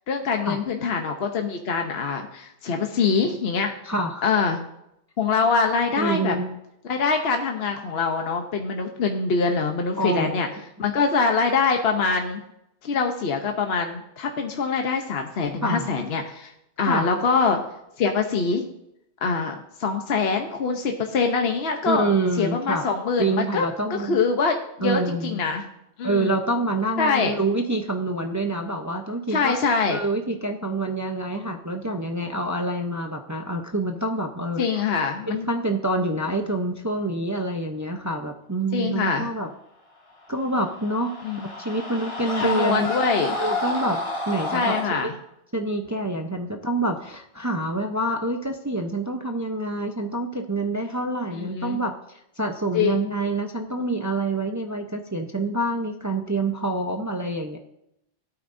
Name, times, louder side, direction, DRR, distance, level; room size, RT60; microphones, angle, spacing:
voice 1, 0.1-3.7 4.2-4.6 5.2-6.3 6.8-10.5 10.8-12.4 12.8-16.5 16.8-17.6 18.0-18.7 19.2-22.1 22.4-23.7 24.0-25.6 26.0-26.3 27.0-27.3 29.3-30.0 34.6-35.5 38.7-39.3 41.2-41.5 42.4-43.3 44.5-45.1 51.4-51.8 52.7-52.9, left 5 dB, 60° left, 3 dB, 1.1 m, -24 dB
voice 2, 3.8-4.3 6.0-6.6 9.9-10.5 15.6-16.0 16.8-17.1 21.9-22.9 23.2-24.2 24.8-25.4 26.0-29.5 29.9-34.8 35.3-39.5 40.3-44.0 44.3-45.1 45.5-57.6, right 2 dB, 20° right, 4 dB, 0.6 m, -27 dB
sound 1, 40.4-44.9, left 2 dB, 30° left, 1.9 m, -29 dB
17.0 x 8.8 x 2.6 m, 0.81 s
omnidirectional pair, 1.2 m